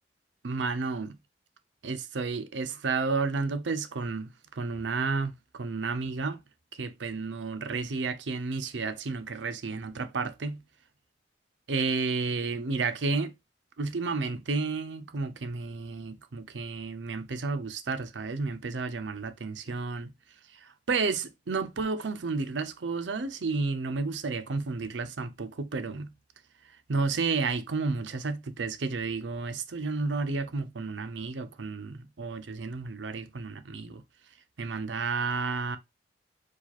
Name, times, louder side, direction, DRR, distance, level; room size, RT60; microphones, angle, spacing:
voice 1, 0.4-1.2 1.8-6.4 6.8-10.6 11.7-13.3 13.8-20.1 20.9-26.1 26.9-34.0 34.6-35.8, right 4 dB, 85° right, 0.7 m, -31 dB
4.8 x 2.4 x 4.1 m
head